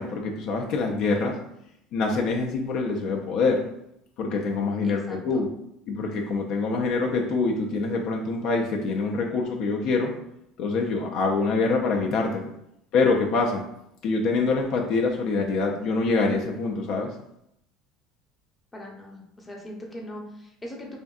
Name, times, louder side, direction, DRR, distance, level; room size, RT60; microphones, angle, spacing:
voice 1, 0.0-1.4 1.9-3.6 4.2-5.5 5.9-10.1 10.6-12.5 12.9-13.6 14.0-17.1, left 3 dB, 65° left, 1 dB, 0.4 m, -25 dB
voice 2, 4.8-5.4 18.7-21.0, left 1 dB, 15° left, -1 dB, 0.7 m, -40 dB
2.6 x 2.5 x 2.3 m, 0.78 s
supercardioid pair, 95°, 0 cm